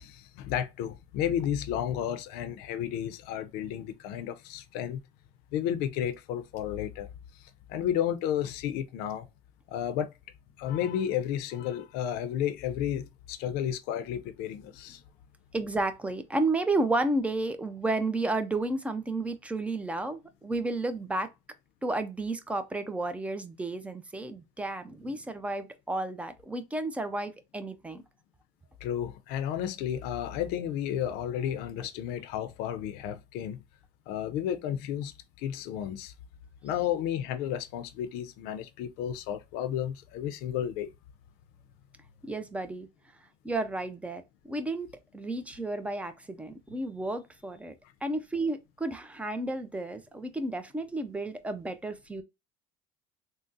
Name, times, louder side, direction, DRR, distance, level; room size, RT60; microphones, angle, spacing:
voice 1, 0.0-5.0 5.5-7.1 7.7-9.3 9.7-10.1 10.6-15.0 28.8-33.6 34.1-36.1 36.6-40.9, left 10 dB, 75° left, 0.5 m, -32 dB
voice 2, 15.5-21.3 21.8-28.0 42.3-42.9 43.4-47.7 48.0-52.2, right 2 dB, 10° right, 0.4 m, -32 dB
3.6 x 2.0 x 2.6 m
cardioid pair, 130°, 16 cm